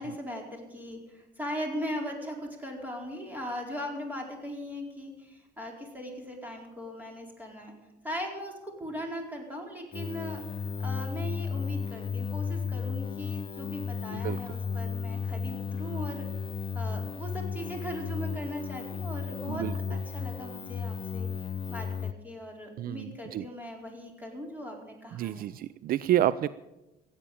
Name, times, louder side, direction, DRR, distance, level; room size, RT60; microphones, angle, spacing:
voice 1, 0.0-7.7 8.0-16.3 16.7-21.3 21.7-25.4, equal, 10° right, 1 dB, 4.4 m, -39 dB
sound 1, 9.9-22.1, left 6 dB, 30° left, 0.5 m, -34 dB
voice 2, 22.8-23.4 25.1-26.5, right 12 dB, 60° right, 17 dB, 0.4 m, -29 dB
16.0 x 8.9 x 8.5 m, 1.0 s
cardioid pair, 110°, 17 cm